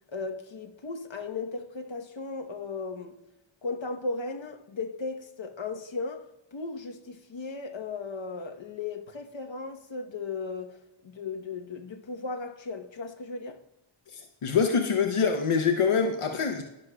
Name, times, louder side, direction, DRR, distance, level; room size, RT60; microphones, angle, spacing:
voice 1, 0.1-3.2 3.6-13.6, left 3 dB, 60° left, 1.0 m, -36 dB
voice 2, 14.1-16.6, left 6 dB, 85° left, 0.8 m, -25 dB
17.0 x 6.4 x 2.2 m
wide cardioid pair, 40°, 50 cm